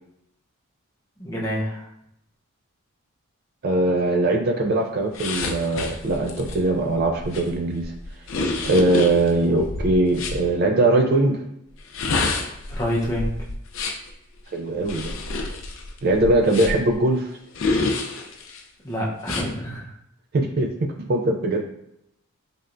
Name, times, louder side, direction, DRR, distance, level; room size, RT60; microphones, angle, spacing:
voice 1, 1.2-1.9 12.7-13.3 18.8-19.9, equal, 15° left, -4 dB, 0.7 m, -27 dB
voice 2, 3.6-7.9 8.6-11.4 14.5-15.1 16.0-17.3 20.3-21.6, right 2 dB, 45° right, 4 dB, 0.3 m, -21 dB
sound 1, 5.1-10.4 11.8-14.1 14.8-16.9 17.5-18.6 19.2-19.5, left 3 dB, 60° left, 0.5 m, -28 dB
4.1 x 3.3 x 2.5 m, 0.78 s
head